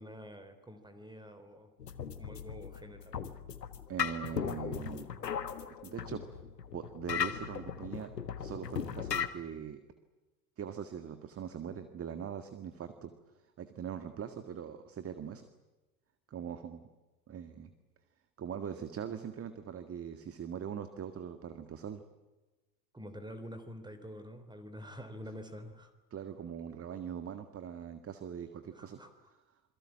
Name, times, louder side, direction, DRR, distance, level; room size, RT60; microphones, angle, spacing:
voice 1, 0.0-1.7 2.2-3.2 22.9-25.9 28.7-29.1, equal, 10° right, 10 dB, 3.3 m, -47 dB
sound 1, 1.8-9.3, left 8 dB, 80° left, 1.6 m, -38 dB
voice 2, 3.9-5.1 5.7-6.2 6.7-8.1 8.4-9.8 10.6-13.1 13.6-15.5 16.3-16.8 17.3-17.7 18.4-22.0 26.1-29.0, right 8 dB, 30° right, 10 dB, 1.9 m, -41 dB
28.5 x 22.5 x 7.6 m, 1.1 s
figure-of-eight pair, 70°, 49 cm